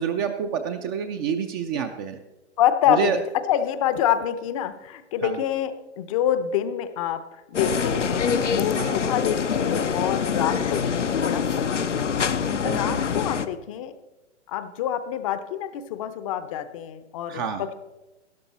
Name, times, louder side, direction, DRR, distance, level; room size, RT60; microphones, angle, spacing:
voice 1, 0.0-2.2 2.9-3.2 5.2-5.4 8.8-9.0 12.6-13.0 17.3-17.6, right 7 dB, 20° right, 6 dB, 0.4 m, -28 dB
voice 2, 2.6-3.2 3.5-12.1 12.3-13.9 14.5-17.7, left 10 dB, 30° left, 11 dB, 0.6 m, -27 dB
sound 1, 7.5-13.5, left 6 dB, 90° left, 0.8 m, -25 dB
13.0 x 10.5 x 4.2 m, 1.1 s
figure-of-eight pair, 125°, 35 cm